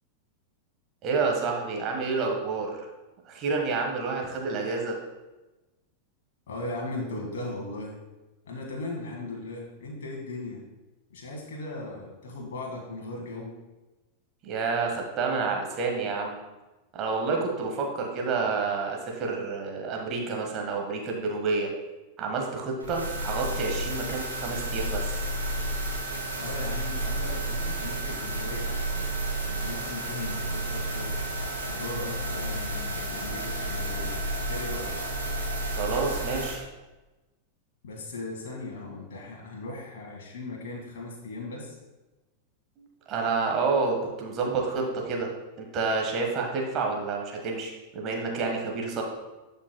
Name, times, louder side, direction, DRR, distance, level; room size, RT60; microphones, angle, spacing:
voice 1, 1.0-2.9 3.3-5.0 14.4-16.4 16.9-21.7 22.2-25.1 35.7-36.6 42.8-45.3 45.6-49.0, right 4 dB, 35° right, 1 dB, 1.4 m, -29 dB
voice 2, 6.5-8.0 8.4-10.6 11.1-13.6 26.4-29.1 29.4-31.2 31.6-35.0 37.8-41.8, left 2 dB, 60° left, -1 dB, 1.7 m, -38 dB
sound 1, 22.8-36.5, right 1 dB, 80° right, 2.3 m, -31 dB
11.5 x 5.3 x 2.2 m, 1.1 s
figure-of-eight pair, 90°, 0 cm